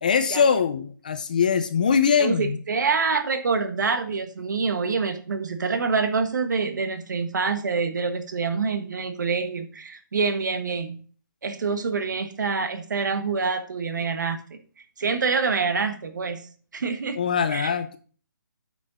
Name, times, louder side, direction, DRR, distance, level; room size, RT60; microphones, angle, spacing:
voice 1, 0.0-2.6 17.2-18.0, left 6 dB, 25° left, 11 dB, 0.4 m, -22 dB
voice 2, 2.2-11.0 11.4-14.4 15.0-16.4 16.7-17.2 17.5-17.7, right 4 dB, 60° right, 8 dB, 1.4 m, -26 dB
9.0 x 6.4 x 4.0 m, 0.41 s
hypercardioid pair, 175°, 11 cm